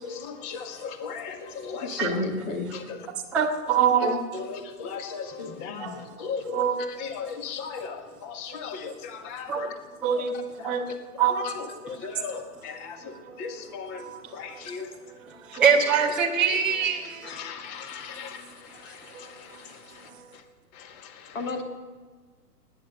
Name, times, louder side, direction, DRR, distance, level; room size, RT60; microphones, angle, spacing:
voice 1, 0.0-2.2 2.7-3.0 4.0-9.8 10.1-10.3 10.6-14.9 15.5-16.1 17.2-20.4 20.7-21.4, left 5 dB, 25° left, 8 dB, 1.7 m, -38 dB
voice 2, 1.8-2.7 17.1-17.3 18.8-19.0 21.3-21.6, left 2 dB, 50° left, 5 dB, 2.9 m, -31 dB
voice 3, 3.3-4.2 5.8-6.0 6.5-6.7 8.5-8.6 9.5-9.7 10.0-10.3 10.6-10.9 11.2-11.3 13.2-13.4 14.0-14.2 14.5-14.7 15.5-17.4 19.1-19.2 19.5-19.6 20.1-20.3, right 7 dB, ahead, -5 dB, 0.6 m, -24 dB
19.0 x 9.4 x 8.1 m, 1.4 s
figure-of-eight pair, 125°, 48 cm